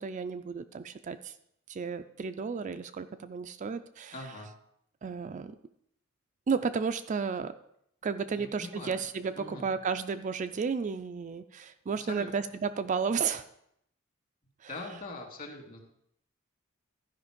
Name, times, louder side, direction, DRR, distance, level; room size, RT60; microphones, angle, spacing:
voice 1, 0.0-1.3 1.7-4.1 5.0-5.5 6.5-7.5 8.0-13.4, right 5 dB, 35° right, 9 dB, 0.3 m, -33 dB
voice 2, 4.1-4.5 8.4-9.0 9.4-9.7 12.0-12.3 14.7-15.8, left 2 dB, 40° left, 1 dB, 2.1 m, -42 dB
12.0 x 5.2 x 5.1 m, 0.74 s
head